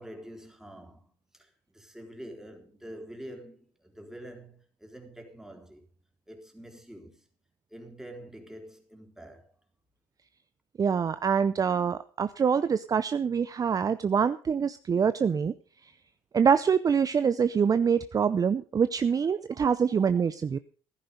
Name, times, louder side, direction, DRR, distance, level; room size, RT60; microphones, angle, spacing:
voice 1, 0.0-5.9 6.3-7.2 7.7-9.5, right 1 dB, 5° right, 3.8 m, -46 dB
voice 2, 10.8-15.5 16.3-20.6, right 6 dB, 35° right, 0.6 m, -25 dB
14.5 x 11.5 x 5.2 m
supercardioid pair, 80°, 11 cm